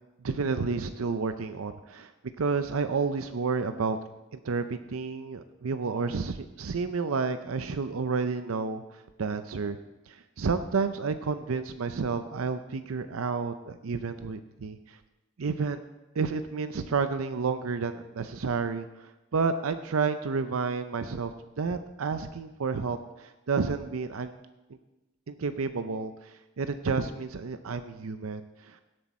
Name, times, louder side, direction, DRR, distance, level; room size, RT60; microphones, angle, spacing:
voice 1, 0.2-2.1 2.4-4.0 4.3-9.8 10.1-15.0 15.4-15.8 16.1-24.3 25.3-28.8, right 4 dB, 75° right, 10 dB, 0.5 m, -30 dB
17.5 x 7.8 x 4.2 m, 1.0 s
head